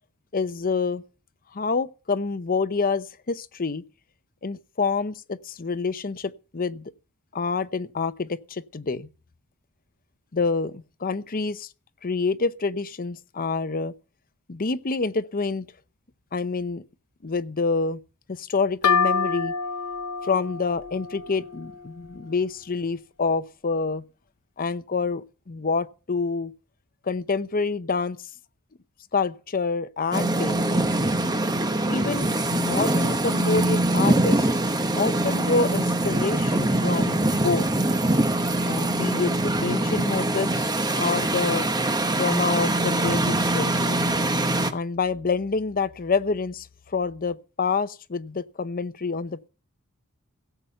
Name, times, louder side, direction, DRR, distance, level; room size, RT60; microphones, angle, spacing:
voice 1, 0.3-1.0 1.5-3.8 4.4-6.9 7.3-9.1 10.3-11.7 12.0-13.9 14.5-15.7 16.3-16.8 17.2-18.0 18.3-19.5 20.2-24.0 24.6-26.5 27.1-28.2 29.1-30.9 31.9-34.5 35.0-37.7 38.7-41.7 42.2-44.1 44.7-49.5, left 4 dB, 40° left, 0.7 m, -27 dB
sound 1, 18.8-22.4, left 5 dB, 80° left, 0.9 m, -27 dB
sound 2, 30.1-44.7, right 1 dB, 20° right, 1.1 m, -23 dB
16.5 x 7.8 x 5.7 m
head